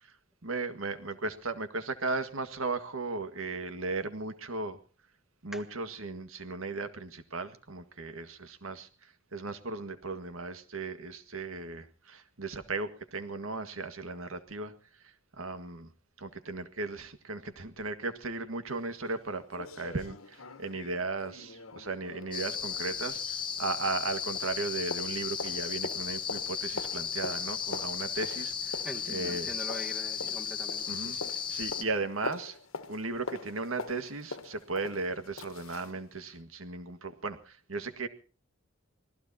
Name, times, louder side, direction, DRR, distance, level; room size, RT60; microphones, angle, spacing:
voice 1, 0.4-4.8 5.4-8.9 9.3-14.7 15.4-15.9 16.2-29.6 30.9-31.2 31.5-32.6 32.9-38.1, right 3 dB, 80° right, 1.8 m, -36 dB
sound 1, 18.7-18.8 19.1-19.2 19.5-24.1 24.4-36.0 36.3-36.4, left 3 dB, 80° left, 1.4 m, -44 dB
sound 2, 22.3-31.8, left 7 dB, 25° left, 1.3 m, -35 dB
voice 2, 28.8-31.3, left 1 dB, ahead, 1.5 m, -43 dB
25.5 x 18.5 x 2.9 m
head